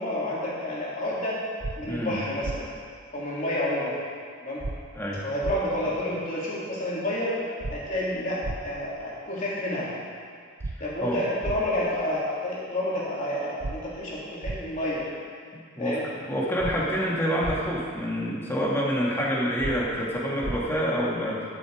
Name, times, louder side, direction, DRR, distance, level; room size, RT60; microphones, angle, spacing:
voice 1, 0.0-1.4 1.8-2.7 3.1-4.0 4.4-4.6 5.2-7.3 7.7-9.9 10.8-15.1 15.8-16.1, left 1 dB, 35° left, -7 dB, 3.5 m, -29 dB
sound 1, 1.6-1.7 2.4-2.6 4.6-4.8 5.4-5.6 7.6-7.8 8.4-8.6 10.6-10.7 11.4-11.6 13.6-13.7 14.4-14.6 16.6-16.8 17.4-17.6 19.6-19.7 20.4-20.6, right 2 dB, 55° right, 0.7 m, -31 dB
voice 2, 1.9-2.2 4.9-5.2 11.0-11.2 15.5-21.4, equal, 10° left, -5 dB, 2.1 m, -27 dB
12.0 x 11.5 x 5.1 m, 2.1 s
head